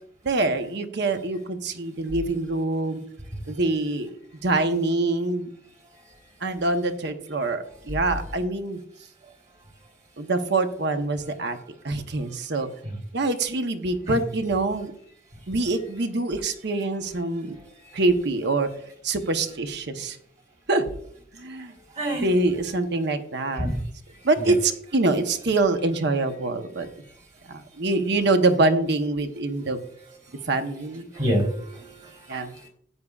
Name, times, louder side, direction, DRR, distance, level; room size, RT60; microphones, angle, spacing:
voice 1, 0.2-3.0 3.5-4.1 4.4-5.5 6.4-8.8 10.2-11.6 11.8-12.7 13.1-14.9 15.5-17.6 17.9-18.7 19.0-20.2 20.7-20.9 21.3-21.7 22.2-23.7 24.2-26.9 27.5-29.8 30.5-31.0 32.3-32.6, right 2 dB, 60° right, 7 dB, 0.9 m, -25 dB
voice 2, 22.0-22.3 23.6-23.8 24.4-24.5 31.1-32.4, equal, 40° right, -1 dB, 3.4 m, -27 dB
15.0 x 9.6 x 2.4 m, 0.65 s
head